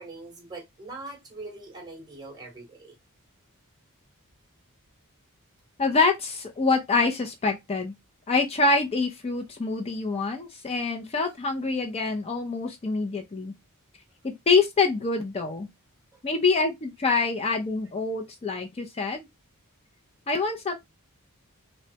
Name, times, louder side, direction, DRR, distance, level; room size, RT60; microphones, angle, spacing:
voice 1, 0.0-2.9, right 2 dB, 20° right, 0.9 m, -42 dB
voice 2, 5.8-7.9 8.3-13.5 14.2-15.7 16.2-19.3 20.3-20.8, left 4 dB, 25° left, 0.4 m, -25 dB
3.1 x 2.1 x 2.7 m
head